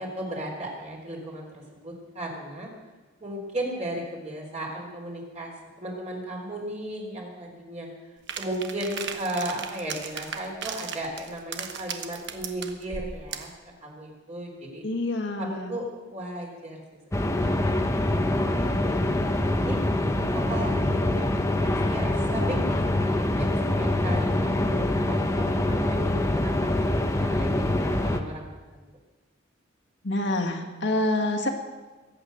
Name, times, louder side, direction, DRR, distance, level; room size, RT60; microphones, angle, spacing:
voice 1, 0.0-2.7 3.2-5.5 5.8-7.9 8.4-13.5 13.8-14.8 15.4-19.0 19.4-19.8 20.3-28.5 28.7-28.8, right 1 dB, 35° right, -1 dB, 3.7 m, -36 dB
sound 1, 8.3-13.6, right 7 dB, 65° right, 1.2 m, -37 dB
voice 2, 14.8-15.7 30.0-31.5, left 1 dB, 65° left, 3 dB, 1.9 m, -27 dB
sound 2, 17.1-28.2, left 1 dB, 15° left, 1.0 m, -25 dB
22.0 x 8.7 x 6.5 m, 1.3 s
head